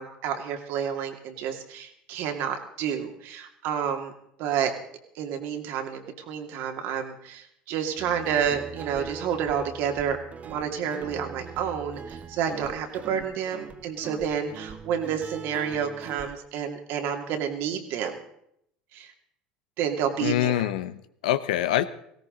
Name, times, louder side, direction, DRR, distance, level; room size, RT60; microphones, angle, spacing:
voice 1, 0.0-4.1 4.4-4.7 5.1-10.2 10.4-18.2 18.9-19.1 19.8-20.5, right 8 dB, 60° right, 5 dB, 2.5 m, -29 dB
Guitar, 8.0-16.3, right 5 dB, 35° right, 1.5 m, -42 dB
voice 2, 20.2-21.8, left 12 dB, 75° left, 13 dB, 0.9 m, -25 dB
18.0 x 17.0 x 3.9 m, 0.72 s
hypercardioid pair, 75°, 4 cm